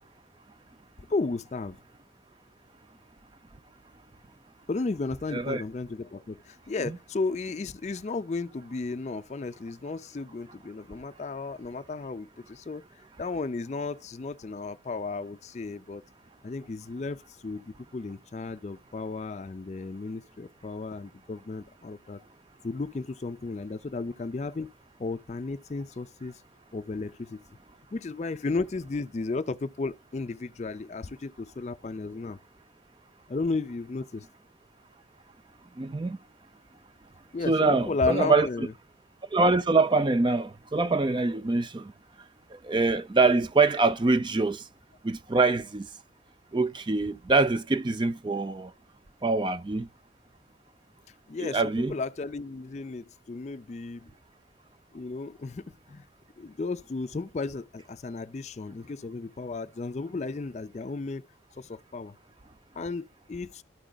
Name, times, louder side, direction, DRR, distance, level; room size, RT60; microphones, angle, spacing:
voice 1, 1.1-1.8 4.7-12.9 13.2-16.0 16.4-22.2 22.6-24.7 25.0-26.4 26.7-27.4 27.9-32.4 33.3-34.3 37.3-38.7 51.3-54.1 54.9-56.1 56.4-61.3 61.6-62.2 62.8-63.6, left 3 dB, 35° left, 0.4 m, -34 dB
voice 2, 35.8-36.2 37.5-38.5 39.3-41.9 42.5-44.6 45.0-45.9 46.5-48.7 49.2-49.9 51.4-52.0, right 3 dB, 25° right, 0.4 m, -24 dB
13.0 x 5.0 x 2.3 m
head